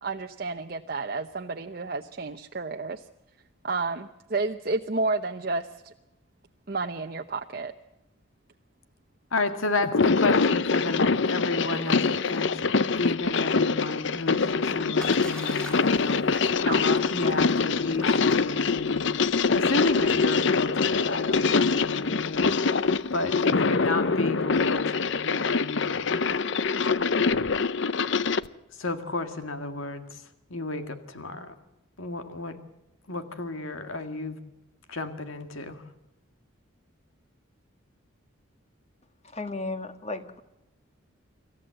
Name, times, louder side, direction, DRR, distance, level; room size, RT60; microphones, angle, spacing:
voice 1, 0.0-3.0 3.6-5.9 6.7-7.7 16.3-16.4 16.7-16.8, right 3 dB, 45° right, 5 dB, 0.8 m, -31 dB
voice 2, 9.3-16.2 16.6-19.0 19.5-26.3 28.8-30.2 30.5-31.5 32.0-32.7 33.1-34.4 34.9-35.8, left 2 dB, 80° left, 7 dB, 2.0 m, -32 dB
sound 1, 9.8-28.5, left 4 dB, 60° left, 0.7 m, -24 dB
Splash splatter, 14.3-24.2, equal, 5° left, 3.0 m, -47 dB
voice 3, 39.2-40.4, left 2 dB, 30° left, 8 dB, 1.7 m, -34 dB
26.5 x 14.5 x 7.7 m, 0.95 s
head